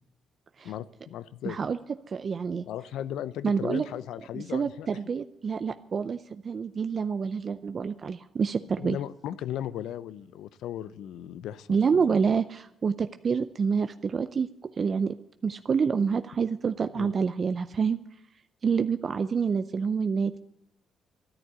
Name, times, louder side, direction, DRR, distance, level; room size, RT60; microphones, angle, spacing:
voice 1, 0.6-1.6 2.7-4.9 8.8-12.0 16.9-17.1, left 11 dB, 85° left, 15 dB, 0.6 m, -36 dB
voice 2, 1.5-1.8 2.1-2.7 3.4-3.9 4.3-9.0 11.7-15.2 15.4-18.0 18.6-20.4, right 6 dB, 45° right, 10 dB, 0.5 m, -27 dB
13.0 x 11.0 x 8.1 m, 0.84 s
cardioid pair, 90°, 0 cm